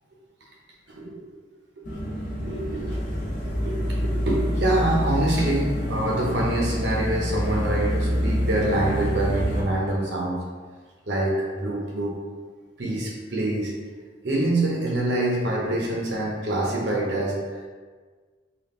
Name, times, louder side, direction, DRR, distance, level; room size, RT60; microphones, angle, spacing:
voice 1, 0.9-1.2 1.8-2.0 2.4-3.0 3.5-10.4 11.1-12.2 12.8-13.7 14.2-17.6, right 1 dB, 65° right, -3 dB, 0.9 m, -26 dB
sound 1, 1.8-9.6, equal, 45° left, 1.0 m, -27 dB
3.6 x 2.5 x 3.7 m, 1.5 s
head